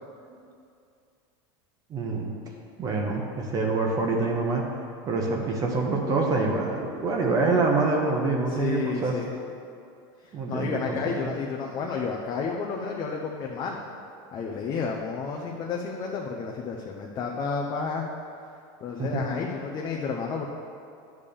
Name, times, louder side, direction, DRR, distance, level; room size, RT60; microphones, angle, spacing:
voice 1, 1.9-2.3 2.8-4.6 5.1-9.1 10.3-11.2 19.0-19.2, right 3 dB, 30° right, 0 dB, 1.0 m, -26 dB
voice 2, 8.4-9.3 10.2-13.9 14.3-18.0 18.8-20.5, left 5 dB, 30° left, -1 dB, 0.7 m, -31 dB
10.5 x 3.7 x 6.9 m, 2.4 s
supercardioid pair, 145°, 13 cm